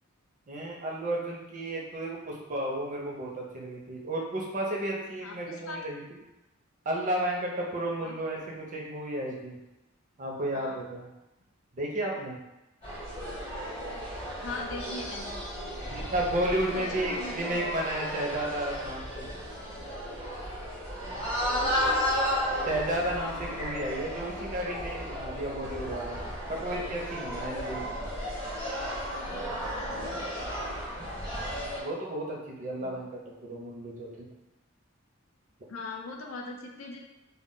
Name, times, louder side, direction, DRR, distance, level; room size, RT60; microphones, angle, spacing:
voice 1, 0.5-6.0 6.9-9.6 10.2-11.1 11.7-12.4 15.9-19.3 22.7-28.1 31.0-31.1 31.8-33.1 33.4-34.3, right 1 dB, 40° right, -1 dB, 0.5 m, -33 dB
voice 2, 5.2-5.8 8.0-8.1 10.5-10.8 14.4-15.3 16.7-17.6 21.5-22.2 29.7-30.3 32.8-32.9 35.7-37.0, left 3 dB, 70° left, 1 dB, 0.4 m, -40 dB
sound 1, 12.8-31.8, equal, 30° left, 0.9 m, -34 dB
2.2 x 2.1 x 3.7 m, 0.96 s
head